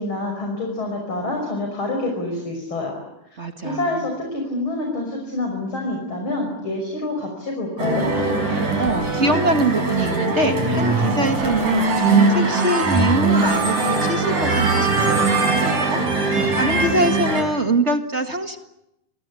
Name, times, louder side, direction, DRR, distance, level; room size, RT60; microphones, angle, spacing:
voice 1, 0.0-3.0 3.6-8.1, left 2 dB, 35° left, 2 dB, 6.3 m, -27 dB
voice 2, 3.4-4.0 8.8-18.6, right 1 dB, 30° right, 6 dB, 1.5 m, -24 dB
sound 1, 7.8-17.4, right 3 dB, 70° right, 7.3 m, -20 dB
29.5 x 23.5 x 8.5 m, 0.85 s
omnidirectional pair, 3.8 m